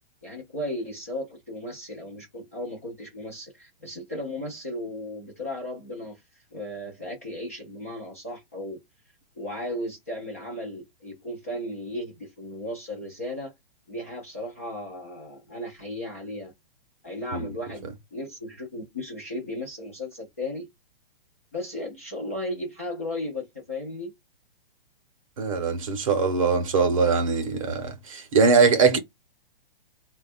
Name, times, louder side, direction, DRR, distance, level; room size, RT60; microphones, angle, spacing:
voice 1, 0.2-6.2 6.5-8.8 9.4-13.5 13.9-16.5 17.0-20.7 21.5-24.1, left 1 dB, 15° left, 0.4 m, -35 dB
voice 2, 25.4-29.0, right 5 dB, 35° right, 0.7 m, -21 dB
4.1 x 2.2 x 4.1 m
hypercardioid pair, 175°, 29 cm